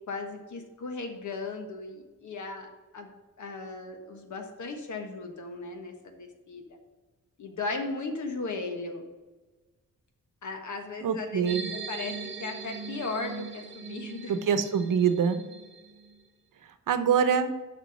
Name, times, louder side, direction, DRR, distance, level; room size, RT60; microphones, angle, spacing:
voice 1, 0.1-3.1 3.4-6.8 7.4-9.0 10.4-11.4 11.9-12.1 12.4-14.3, left 3 dB, 65° left, 4 dB, 1.5 m, -36 dB
voice 2, 11.0-11.7 14.3-15.4 16.9-17.5, right 7 dB, 75° right, 9 dB, 0.9 m, -25 dB
sound 1, 11.4-16.2, right 4 dB, 40° right, 0.8 m, -40 dB
7.3 x 5.9 x 5.6 m, 1.2 s
wide cardioid pair, 160°, 32 cm